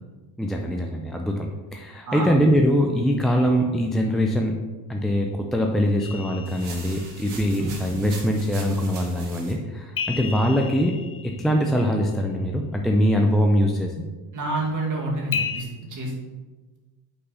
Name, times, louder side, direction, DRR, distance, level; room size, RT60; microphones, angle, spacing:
voice 1, 0.4-1.5 1.7-4.6 4.9-13.9, equal, ahead, 1 dB, 0.4 m, -22 dB
sound 1, 6.0-7.3 10.0-12.0 15.3-15.6, left 6 dB, 35° left, 0.8 m, -33 dB
sound 2, 6.5-9.5, right 4 dB, 75° right, 1.8 m, -41 dB
voice 2, 14.3-16.1, right 2 dB, 45° right, -3 dB, 2.1 m, -28 dB
5.5 x 4.1 x 5.5 m, 1.3 s
cardioid pair, 115°, 41 cm